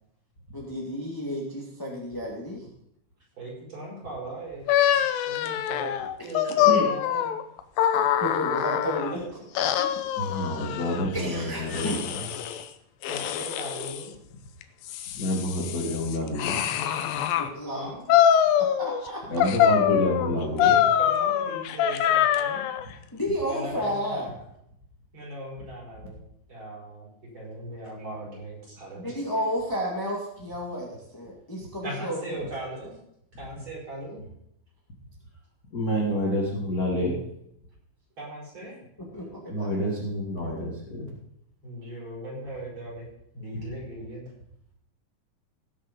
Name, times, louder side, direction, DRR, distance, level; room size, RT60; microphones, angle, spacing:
voice 1, 0.5-2.6 6.2-6.3 6.6-6.9 8.2-9.2 10.3-10.4 11.1-12.0 17.3-17.9 18.6-19.2 23.1-24.3 29.0-32.4 39.1-39.7, equal, 10° left, -3 dB, 0.9 m, -31 dB
voice 2, 3.4-4.7 4.9-7.4 8.8-9.3 9.8-9.9 13.1-14.1 17.7-18.0 20.5-22.6 23.5-24.3 25.1-26.2 26.5-29.1 31.8-32.9 33.4-34.2 38.2-38.7 41.6-43.1 43.3-44.3, right 1 dB, 30° right, -5 dB, 5.9 m, -39 dB
sound 1, 4.7-9.1 9.6-11.1 11.7-12.6 13.0-14.0 14.6-17.5 18.1-19.1 19.4-22.8, left 10 dB, 75° left, 2.4 m, -24 dB
voice 3, 10.2-12.3 15.1-16.6 19.3-20.8 35.7-37.2 39.5-41.1, equal, 30° left, -3 dB, 1.8 m, -28 dB
18.5 x 6.7 x 5.3 m, 0.75 s
omnidirectional pair, 4.5 m